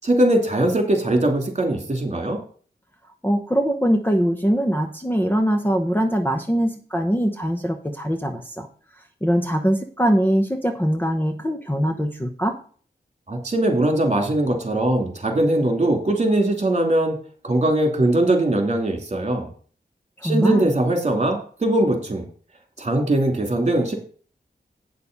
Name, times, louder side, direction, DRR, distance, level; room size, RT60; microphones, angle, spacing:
voice 1, 0.0-2.4 13.3-17.2 17.4-19.5 20.2-22.2 22.8-23.9, right 1 dB, 40° right, 4 dB, 2.8 m, -21 dB
voice 2, 3.2-8.7 9.2-12.5 20.2-20.7, equal, 10° left, 5 dB, 1.0 m, -22 dB
8.6 x 6.7 x 5.3 m, 0.42 s
wide cardioid pair, 100°, 17 cm